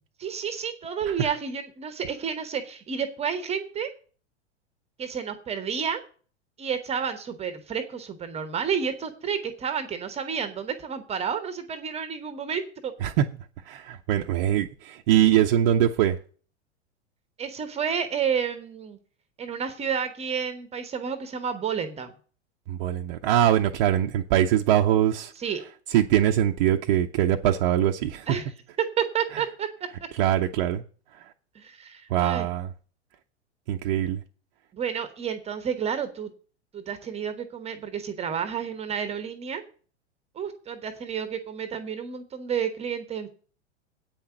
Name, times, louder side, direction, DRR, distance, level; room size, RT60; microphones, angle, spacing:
voice 1, 0.2-3.9 5.0-6.0 6.6-12.9 17.4-19.0 19.4-22.1 25.4-25.6 28.3-28.5 28.8-29.7 31.5-32.5 34.7-36.3 36.7-39.6 40.3-43.3, right 7 dB, 20° right, 10 dB, 1.0 m, -30 dB
voice 2, 13.7-16.2 22.7-25.3 25.9-28.3 30.2-30.8 32.1-32.7 33.7-34.2, right 11 dB, 40° right, 3 dB, 0.7 m, -22 dB
8.7 x 5.8 x 7.8 m, 0.41 s
figure-of-eight pair, 90°, 34 cm